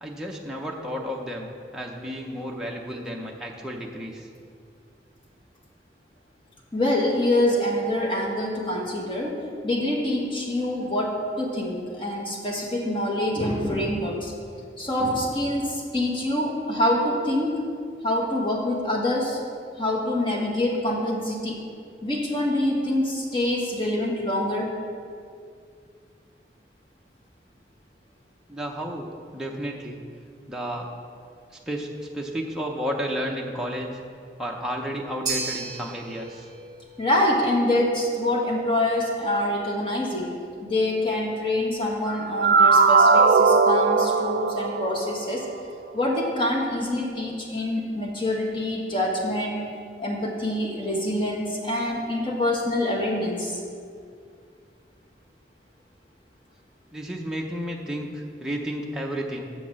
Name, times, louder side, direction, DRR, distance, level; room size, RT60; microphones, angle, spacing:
voice 1, 0.0-4.3 28.5-29.1 29.3-30.0 30.5-30.9 31.5-31.9 32.1-33.9 34.4-36.5 56.9-59.5, equal, 5° right, -2 dB, 0.6 m, -32 dB
voice 2, 6.7-9.3 9.6-14.3 14.8-17.5 18.0-19.4 19.8-21.6 22.0-24.8 37.0-40.3 40.6-45.4 45.9-49.6 50.0-53.6, left 1 dB, 30° left, -2 dB, 1.5 m, -25 dB
sound 1, 35.3-43.6, right 4 dB, 25° right, 1.8 m, -39 dB
sound 2, 42.1-45.6, right 4 dB, 55° right, 0.3 m, -19 dB
7.1 x 5.9 x 7.4 m, 2.2 s
head